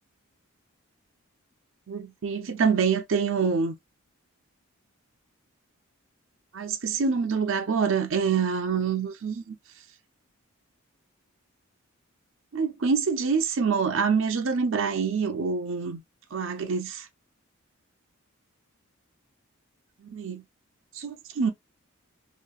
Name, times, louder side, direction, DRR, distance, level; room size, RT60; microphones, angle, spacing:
voice 1, 1.9-3.8 6.5-9.6 12.5-16.0 16.3-17.1 20.0-20.4 20.9-21.5, right 5 dB, 60° right, 0.5 m, -26 dB
2.9 x 2.2 x 2.3 m
head